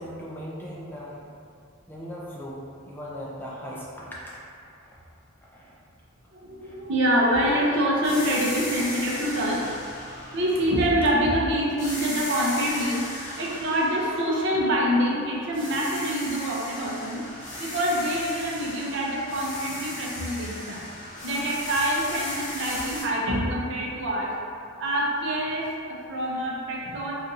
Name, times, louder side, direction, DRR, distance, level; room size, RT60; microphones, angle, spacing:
voice 1, 0.0-1.3 1.9-4.4 4.8-4.9 5.5-5.8 6.6-6.8 7.2-7.8 22.0-22.1, equal, 10° left, -5 dB, 0.3 m, -39 dB
voice 2, 6.3-9.7 10.3-17.2 17.6-20.9 21.2-24.3 24.8-27.1, equal, 55° right, -3 dB, 0.6 m, -26 dB
sound 1, 8.0-11.3 11.8-15.1 15.5-23.0, left 1 dB, 35° left, 0.9 m, -37 dB
2.6 x 2.4 x 4.0 m, 2.4 s
head